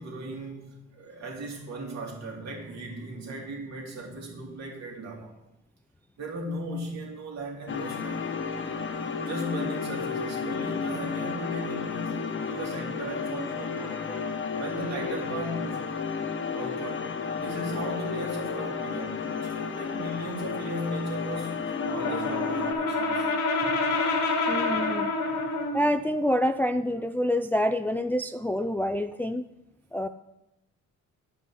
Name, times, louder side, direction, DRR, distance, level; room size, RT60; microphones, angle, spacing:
voice 1, 0.0-5.3 6.2-8.2 9.3-14.0 14.6-15.8 16.5-17.1 17.4-23.3, right 1 dB, 60° right, 0 dB, 2.8 m, -37 dB
sound 1, 7.7-22.7, left 5 dB, 40° left, 1.0 m, -32 dB
voice 2, 13.8-14.3 24.5-25.1 25.7-29.4 29.9-30.1, left 1 dB, 5° left, 9 dB, 0.3 m, -27 dB
Brass instrument, 21.7-25.9, left 3 dB, 90° left, 1.8 m, -27 dB
9.5 x 5.6 x 6.2 m, 0.90 s
cardioid pair, 90°, 30 cm